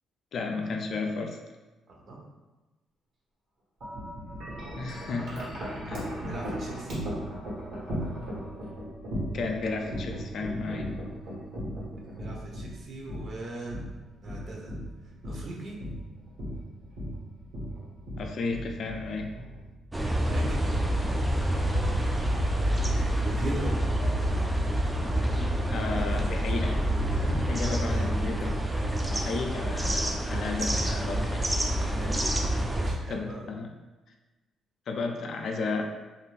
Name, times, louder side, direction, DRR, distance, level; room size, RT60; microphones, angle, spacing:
voice 1, 0.3-1.4 4.8-5.4 5.9-6.1 9.3-11.0 18.2-19.3 25.0-25.1 25.7-28.9 29.1-31.5 33.1-33.7 34.9-35.8, left 4 dB, 60° left, 3 dB, 0.4 m, -33 dB
voice 2, 1.9-2.2 6.1-7.0 12.2-13.8 14.2-14.7 15.2-15.8 20.2-20.7 22.0-22.5 23.2-23.9 27.9-28.1 31.9-32.2 32.7-33.5, right 2 dB, 55° right, -2 dB, 0.7 m, -39 dB
Wind chime, 3.8-20.0, equal, 80° right, 1.3 m, -37 dB
sound 1, 19.9-32.9, right 1 dB, 15° right, 0.3 m, -27 dB
2.5 x 2.4 x 3.1 m, 1.1 s
cardioid pair, 90°, 0 cm